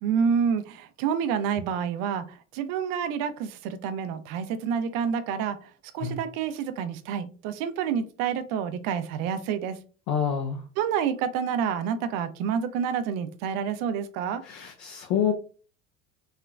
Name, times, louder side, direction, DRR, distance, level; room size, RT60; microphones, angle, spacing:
voice 1, 0.0-9.8 10.8-14.4, right 7 dB, 50° right, 10 dB, 0.6 m, -28 dB
voice 2, 10.1-10.6 14.4-15.3, left 8 dB, 50° left, 1 dB, 0.7 m, -27 dB
3.2 x 2.9 x 2.4 m, 0.38 s
hypercardioid pair, 70°, 41 cm